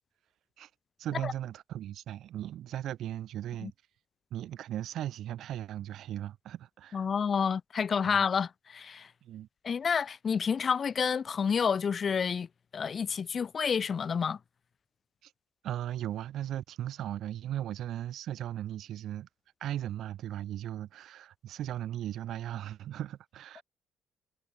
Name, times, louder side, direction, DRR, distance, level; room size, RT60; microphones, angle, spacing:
voice 1, 1.0-3.7 4.3-7.0 8.0-8.3 9.2-9.5 15.2-15.3 15.6-19.3 19.6-23.6, right 12 dB, 60° right, 2.8 m, -37 dB
voice 2, 6.9-9.1 9.6-12.5 12.7-14.4, left 6 dB, 30° left, 1.3 m, -29 dB
cardioid pair, 155°, 0 cm